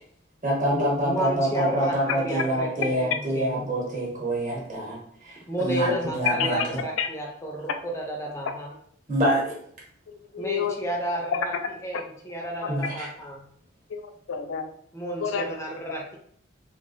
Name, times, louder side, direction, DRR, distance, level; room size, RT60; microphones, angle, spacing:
voice 1, 0.4-6.8 9.1-9.6 12.7-13.1, right 1 dB, 40° right, -4 dB, 0.9 m, -26 dB
voice 2, 1.0-3.7 5.5-8.7 10.4-11.5 11.8-13.4 14.9-16.2, right 1 dB, 15° left, 0 dB, 0.4 m, -31 dB
voice 3, 5.6-6.0 6.4-6.6 7.0-7.1 10.1-10.8 13.9-14.7 15.2-15.4, left 7 dB, 75° left, 6 dB, 0.4 m, -30 dB
2.4 x 2.1 x 3.7 m, 0.66 s
head